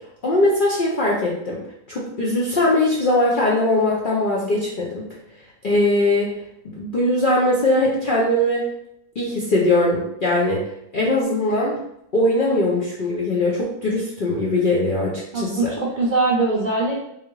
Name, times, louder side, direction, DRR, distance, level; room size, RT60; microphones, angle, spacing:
voice 1, 0.2-5.1 5.6-6.4 6.6-8.6 9.2-10.6 10.9-11.7 12.1-15.7, left 1 dB, 55° left, -5 dB, 0.6 m, -20 dB
voice 2, 15.3-17.0, right 3 dB, 55° right, -6 dB, 0.5 m, -21 dB
3.4 x 3.4 x 3.0 m, 0.77 s
omnidirectional pair, 1.6 m